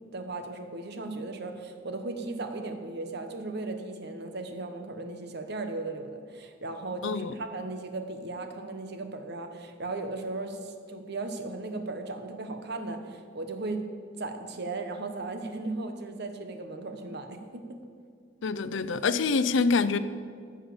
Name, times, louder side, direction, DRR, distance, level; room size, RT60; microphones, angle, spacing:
voice 1, 0.0-13.9 14.2-17.8, right 2 dB, 60° right, 6 dB, 1.0 m, -36 dB
voice 2, 7.0-7.3 18.4-20.0, left 4 dB, 70° left, 14 dB, 0.5 m, -26 dB
14.0 x 5.5 x 7.1 m, 2.1 s
head